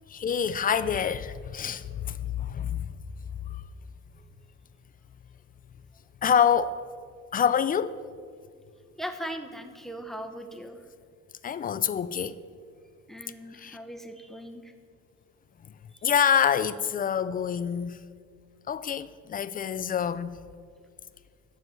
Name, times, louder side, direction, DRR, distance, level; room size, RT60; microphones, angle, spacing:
voice 1, 0.1-2.9 3.5-3.6 6.2-6.8 7.3-8.0 11.4-12.3 13.5-13.8 16.0-18.0 18.7-20.4, left 8 dB, 30° left, 0.4 m, -26 dB
voice 2, 9.0-10.8 13.1-14.7 15.9-16.0, equal, ahead, 0.9 m, -39 dB
11.0 x 7.0 x 7.5 m
cardioid pair, 125°, 31 cm